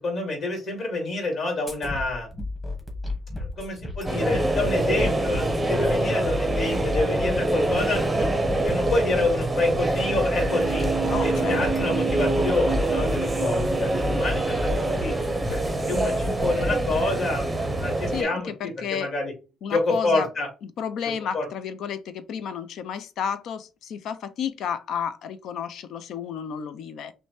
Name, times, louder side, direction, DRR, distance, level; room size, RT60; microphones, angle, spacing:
voice 1, 0.0-2.3 3.4-8.3 8.6-10.9 11.2-15.1 15.5-15.6 15.9-19.3 19.7-20.5 21.3-21.5, left 2 dB, 40° left, 2.1 m, -28 dB
sound 1, 1.7-17.1, left 2 dB, 10° left, 1.2 m, -33 dB
sound 2, 4.0-18.2, right 2 dB, 10° right, 0.7 m, -25 dB
sound 3, 10.4-16.9 17.2-17.3, right 6 dB, 60° right, 0.5 m, -34 dB
voice 2, 11.0-12.0 18.1-19.1 19.6-20.3 20.8-27.1, left 8 dB, 60° left, 0.5 m, -32 dB
5.9 x 2.2 x 3.1 m
cardioid pair, 165°, 0 cm